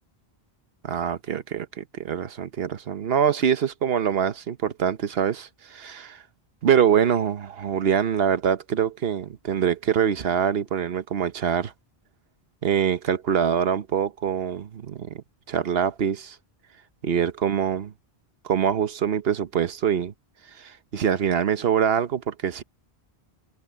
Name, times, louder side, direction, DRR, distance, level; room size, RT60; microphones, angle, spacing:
voice 1, 0.8-6.2 6.6-11.7 12.6-16.4 17.0-17.9 18.4-20.1 20.5-22.6, right 8 dB, 65° right, 1.1 m, -24 dB
omnidirectional pair, 1.1 m